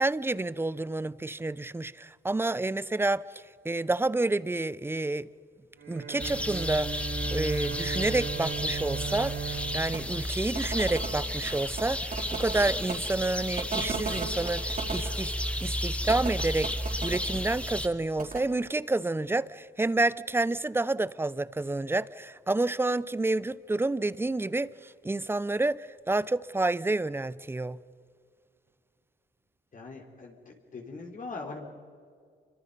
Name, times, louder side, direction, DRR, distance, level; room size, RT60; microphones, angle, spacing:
voice 1, 0.0-5.3 5.9-7.0 7.3-15.3 15.6-27.8, right 2 dB, 10° right, 0.6 m, -29 dB
Bowed string instrument, 5.8-11.2, right 8 dB, 70° right, 3.7 m, -38 dB
sound 1, 6.2-17.9, left 1 dB, 5° left, 1.4 m, -33 dB
sound 2, 9.9-10.0 10.5-12.9 13.6-15.1 16.1-17.2 18.2-18.4, right 5 dB, 45° right, 4.6 m, -36 dB
voice 2, 29.7-31.7, left 3 dB, 40° left, 3.5 m, -41 dB
27.0 x 24.5 x 5.4 m
cardioid pair, 90°, 20 cm